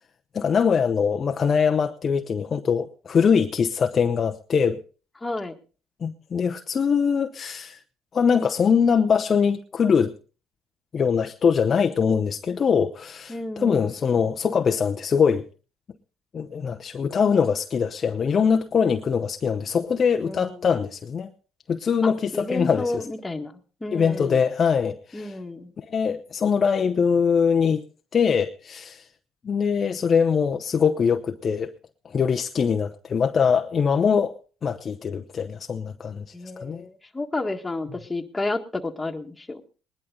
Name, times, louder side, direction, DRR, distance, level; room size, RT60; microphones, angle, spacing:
voice 1, 0.3-4.8 6.0-7.8 8.1-10.1 10.9-15.5 16.3-21.3 21.7-22.9 23.9-25.3 25.9-27.8 28.1-29.0 29.4-31.7 32.0-36.2 36.6-36.8, left 6 dB, 40° left, 0.8 m, -22 dB
voice 2, 5.2-5.6 13.3-13.9 20.2-20.9 22.0-24.5 25.1-25.7 36.3-39.6, left 2 dB, 15° left, 1.8 m, -31 dB
20.0 x 11.0 x 3.9 m
supercardioid pair, 85°, 0 cm